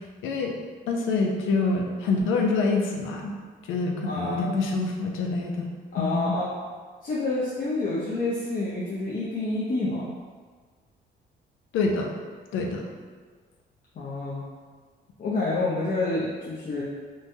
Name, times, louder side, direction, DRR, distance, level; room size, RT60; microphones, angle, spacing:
voice 1, 0.2-0.5 0.9-3.3 3.7-5.7 6.0-6.4 11.7-12.1 12.5-12.8, left 3 dB, 85° left, 1 dB, 0.5 m, -26 dB
voice 2, 4.0-4.5 5.9-6.5 7.0-10.0 14.0-14.4 15.2-16.8, left 2 dB, 45° left, -8 dB, 0.6 m, -28 dB
3.1 x 2.2 x 2.6 m, 1.5 s
cardioid pair, 90°, 20 cm